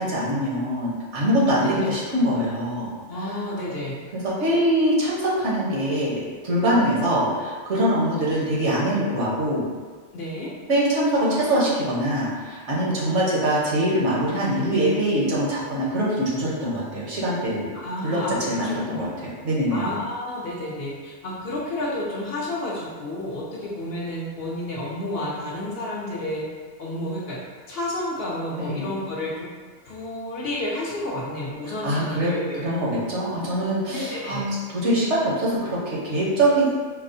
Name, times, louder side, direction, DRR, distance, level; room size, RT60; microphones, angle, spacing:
voice 1, 0.0-2.9 4.2-9.6 10.7-17.7 18.0-19.9 28.6-28.9 31.8-34.5 34.8-36.7, right 1 dB, 70° right, -6 dB, 1.2 m, -23 dB
voice 2, 3.1-4.0 10.1-10.5 17.7-19.1 19.7-26.5 26.8-27.4 27.7-29.5 29.8-32.7 33.9-34.5, left 1 dB, 60° left, -4 dB, 0.8 m, -31 dB
4.6 x 2.0 x 2.6 m, 1.5 s
omnidirectional pair, 1.2 m